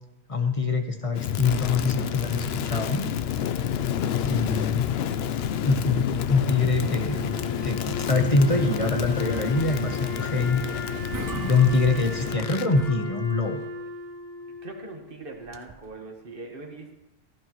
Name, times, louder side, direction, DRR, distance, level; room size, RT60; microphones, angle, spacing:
voice 1, 0.3-3.0 4.2-4.8 5.6-10.9 11.3-13.6, left 3 dB, 35° left, 5 dB, 1.1 m, -24 dB
Crackle, 1.1-12.7, left 9 dB, 75° left, 0.8 m, -29 dB
Wind instrument woodwind instrument, 6.3-15.3, left 2 dB, 50° left, 3.2 m, -37 dB
sound 1, 10.6-10.7 10.9-12.4 12.7-13.7 15.4-15.9, right 4 dB, 35° right, 0.3 m, -40 dB
voice 2, 14.6-16.9, right 3 dB, 60° right, 1 dB, 1.8 m, -41 dB
15.5 x 12.0 x 3.1 m, 0.95 s
omnidirectional pair, 1.1 m